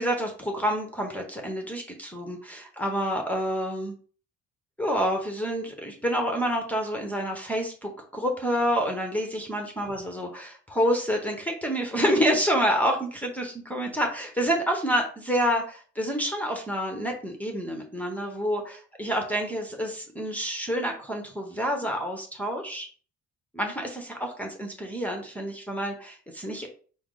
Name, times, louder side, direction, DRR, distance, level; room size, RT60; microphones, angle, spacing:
voice 1, 0.0-3.9 4.8-22.9 23.5-26.7, equal, 5° left, 2 dB, 0.9 m, -28 dB
6.0 x 2.0 x 3.8 m, 0.42 s
cardioid pair, 90°, 30 cm